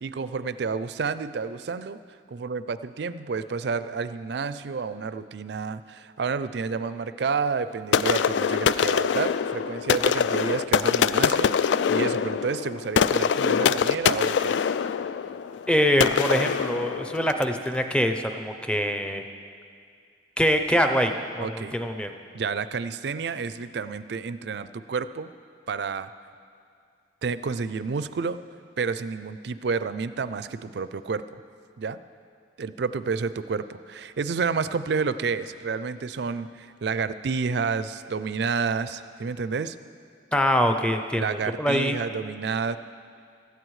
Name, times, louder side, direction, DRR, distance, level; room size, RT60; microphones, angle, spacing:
voice 1, 0.0-2.0 2.3-14.6 21.4-21.8 22.3-25.3 25.7-26.1 27.2-28.4 28.8-31.4 31.8-32.0 32.6-39.8 41.1-42.8, right 5 dB, 65° right, 13 dB, 0.4 m, -30 dB
sound 1, 7.9-17.6, left 7 dB, 75° left, 0.3 m, -24 dB
voice 2, 15.7-19.2 20.4-22.1 40.3-42.0, equal, 5° left, 6 dB, 0.6 m, -24 dB
17.0 x 13.5 x 3.2 m, 2.3 s
head